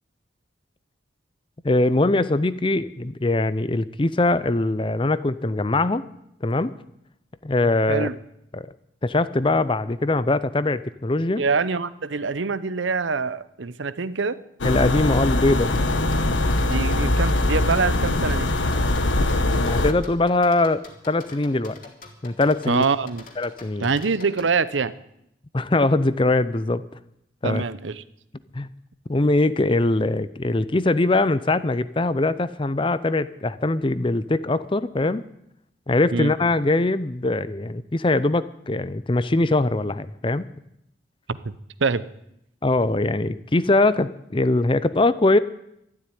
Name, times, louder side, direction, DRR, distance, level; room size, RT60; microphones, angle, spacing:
voice 1, 1.6-6.0 6.4-6.7 7.4-8.1 8.5-8.6 9.0-11.4 14.6-15.8 19.5-21.8 22.2-22.8 23.4-23.9 25.5-26.8 27.4-27.6 28.5-28.7 29.1-35.3 35.9-40.5 42.6-45.4, left 2 dB, 25° left, 15 dB, 0.6 m, -22 dB
voice 2, 11.4-14.4 16.6-18.5 22.7-23.3 23.8-24.9 27.4-28.0 36.1-36.3 41.3-41.5 41.8-42.1, right 4 dB, 80° right, 16 dB, 0.8 m, -24 dB
sound 1, 14.6-19.9, left 2 dB, 80° left, 1.2 m, -22 dB
sound 2, 15.7-24.5, left 3 dB, 45° left, 2.5 m, -45 dB
13.0 x 12.0 x 9.4 m, 0.79 s
head